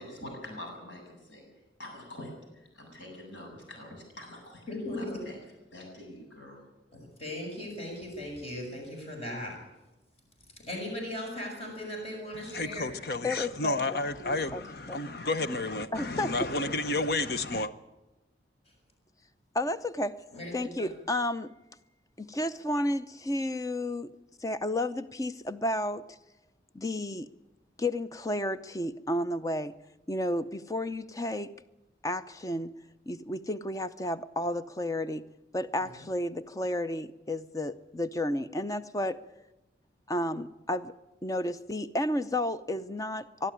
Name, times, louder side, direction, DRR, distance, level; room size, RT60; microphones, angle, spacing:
voice 1, 0.0-1.4 1.8-5.4 5.7-6.6, left 1 dB, 90° left, 1 dB, 7.6 m, -45 dB
voice 2, 4.7-5.3 6.9-9.7 10.5-12.9 20.3-20.9 35.8-35.9, left 1 dB, 35° left, 0 dB, 6.5 m, -38 dB
voice 3, 12.5-17.7, left 2 dB, 55° left, 12 dB, 1.0 m, -31 dB
voice 4, 13.2-14.0 14.5-14.6 14.9-15.0 15.9-16.3 19.5-20.1 20.5-21.5 22.2-24.1 24.4-26.2 26.7-27.3 27.8-29.7 30.1-31.5 32.0-32.7 33.1-35.2 35.5-39.2 40.1-40.9 41.2-43.5, left 1 dB, 20° left, 12 dB, 0.6 m, -32 dB
21.5 x 12.0 x 9.9 m, 1.0 s
head